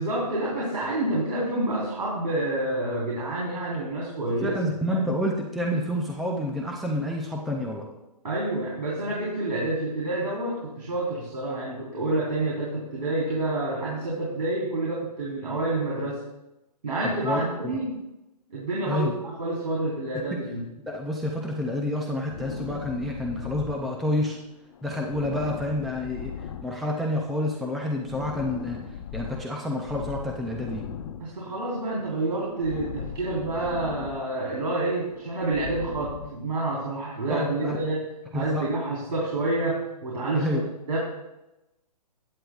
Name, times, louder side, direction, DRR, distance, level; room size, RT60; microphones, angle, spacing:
voice 1, 0.0-4.6 4.9-5.1 8.2-16.2 16.8-18.0 18.5-20.6 31.2-38.0 38.3-40.6 40.9-41.0, right 2 dB, 85° right, -5 dB, 4.1 m, -28 dB
voice 2, 4.4-7.9 17.2-17.4 18.9-19.1 20.3-20.4 20.9-24.4 24.8-26.3 26.6-28.8 29.1-30.8 37.3-37.8 38.3-38.7 40.3-40.7, left 1 dB, ahead, 0 dB, 0.3 m, -28 dB
sound 1, 22.3-24.4 24.7-27.2 27.5-29.4 29.8-31.8 32.0-34.6 34.9-36.3, left 8 dB, 45° left, 1.0 m, -39 dB
16.0 x 9.9 x 2.4 m, 0.96 s
hypercardioid pair, 150°, 21 cm